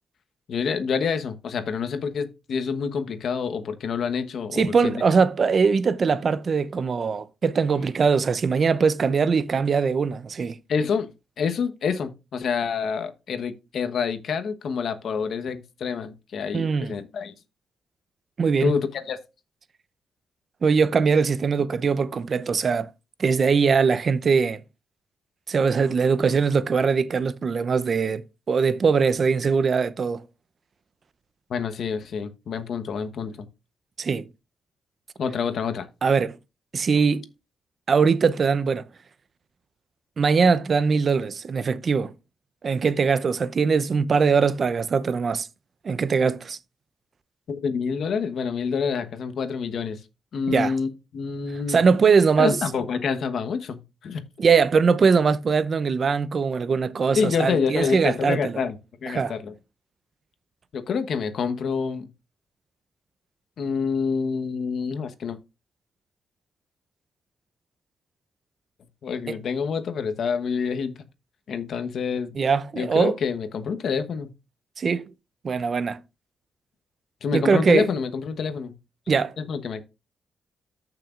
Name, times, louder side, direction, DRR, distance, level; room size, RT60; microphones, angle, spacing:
voice 1, 0.5-5.0 10.7-11.1 11.4-17.3 18.6-19.2 31.5-33.5 35.2-35.9 47.5-50.0 50.3-51.8 52.4-54.2 57.1-58.8 59.0-59.5 60.7-62.1 63.6-65.4 69.0-71.0 71.5-72.3 72.7-74.3 77.2-78.8 79.4-79.8, left 6 dB, 65° left, 1.1 m, -27 dB
voice 2, 4.6-10.6 16.5-16.9 18.4-18.7 20.6-22.9 23.2-24.6 25.5-30.2 34.0-34.3 36.0-36.4 36.7-37.3 37.9-38.9 40.2-42.1 42.6-45.5 45.8-46.6 50.5-50.7 51.7-52.6 54.4-58.5 59.1-59.3 72.4-73.2 74.8-75.1 75.4-76.0 77.3-77.9 79.1-79.3, right 5 dB, 50° right, 0.6 m, -21 dB
14.0 x 6.0 x 2.5 m
cardioid pair, 90°, 0 cm